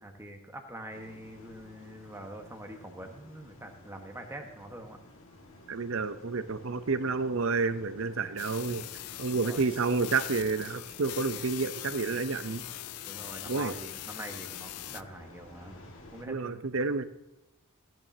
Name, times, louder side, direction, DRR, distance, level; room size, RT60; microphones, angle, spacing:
voice 1, 0.0-5.0 9.3-9.7 13.0-15.9 16.1-16.8, right 1 dB, 10° right, 3 dB, 1.2 m, -45 dB
sound 1, 0.9-16.3, left 1 dB, 60° left, 2.0 m, -53 dB
voice 2, 5.7-8.8 9.2-12.6 13.5-13.7 16.3-17.0, right 4 dB, 60° right, 12 dB, 0.6 m, -30 dB
sound 2, 8.4-15.0, left 14 dB, 90° left, 0.4 m, -42 dB
15.0 x 10.5 x 2.8 m, 0.97 s
head